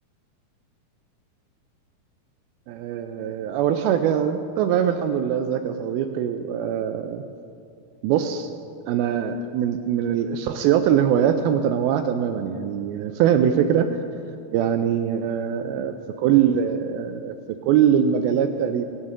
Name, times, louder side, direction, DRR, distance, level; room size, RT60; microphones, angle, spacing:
voice 1, 2.7-7.2 8.0-8.5 8.9-14.0 14.5-17.4 17.7-18.8, right 9 dB, 80° right, 7 dB, 2.4 m, -22 dB
22.5 x 10.0 x 3.7 m, 2.4 s
omnidirectional pair, 4.5 m